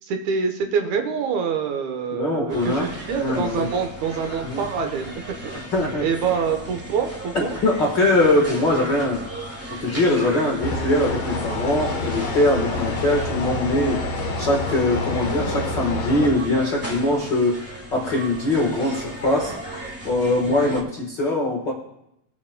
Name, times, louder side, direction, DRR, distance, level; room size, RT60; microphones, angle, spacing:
voice 1, 0.0-5.6 6.0-7.6 20.4-20.8, right 6 dB, 75° right, 5 dB, 2.3 m, -26 dB
voice 2, 2.1-2.9 3.2-3.7 4.4-4.6 5.7-6.0 7.3-9.2 9.7-14.0 14.4-19.5 20.0-21.7, left 2 dB, 45° left, -2 dB, 1.6 m, -22 dB
sound 1, 2.5-20.8, right 1 dB, 20° right, 0.3 m, -36 dB
sound 2, 10.6-16.3, left 2 dB, 65° left, 2.0 m, -27 dB
23.5 x 8.5 x 2.2 m, 0.81 s
omnidirectional pair, 3.4 m